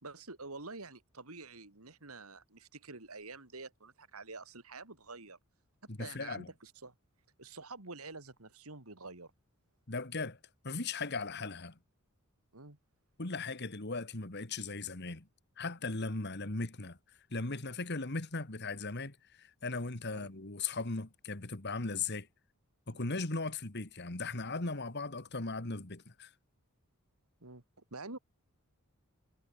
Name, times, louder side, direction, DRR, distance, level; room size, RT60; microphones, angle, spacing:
voice 1, 0.0-5.4 6.0-6.9 7.4-9.3 12.5-12.8 20.2-20.3 22.9-23.2 27.4-27.6 27.9-28.2, right 3 dB, 85° right, 3.4 m, -48 dB
voice 2, 5.9-6.5 9.9-10.4 10.6-11.8 13.2-15.3 15.6-17.0 17.3-22.3 22.9-26.3, left 3 dB, 50° left, 1.9 m, -38 dB
head